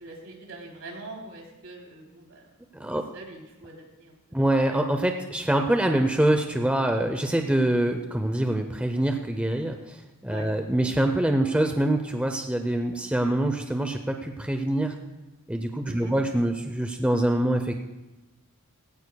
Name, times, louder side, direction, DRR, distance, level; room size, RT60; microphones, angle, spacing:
voice 1, 0.0-2.5 2.7-4.4 10.3-10.5 15.8-16.2, right 2 dB, 65° right, -1 dB, 3.3 m, -43 dB
voice 2, 4.3-10.0 10.2-14.9 15.5-17.7, right 1 dB, 5° right, 5 dB, 0.6 m, -25 dB
17.5 x 16.5 x 2.3 m, 1.1 s
head